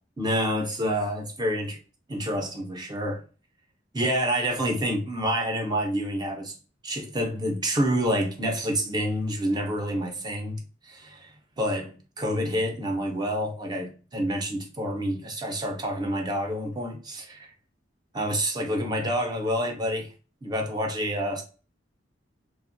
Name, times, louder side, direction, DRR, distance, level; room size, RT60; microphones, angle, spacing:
voice 1, 0.2-1.8 2.1-3.2 3.9-6.5 6.8-17.5 18.1-20.1 20.4-21.4, equal, 20° right, 0.5 m, -28 dB
2.8 x 2.0 x 2.4 m
head